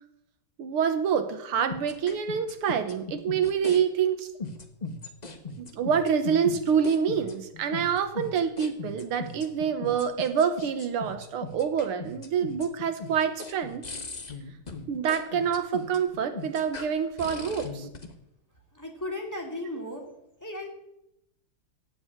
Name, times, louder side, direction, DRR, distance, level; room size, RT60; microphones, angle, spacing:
voice 1, 0.6-4.3 5.6-13.8 14.9-17.9, right 7 dB, 80° right, 10 dB, 2.0 m, -27 dB
sound 1, 1.7-3.8 4.4-18.1, left 4 dB, 30° left, 0.8 m, -38 dB
voice 2, 18.7-20.0 20.4-20.7, left 1 dB, 10° left, 1 dB, 2.5 m, -35 dB
16.5 x 5.6 x 8.6 m, 0.83 s
omnidirectional pair, 2.4 m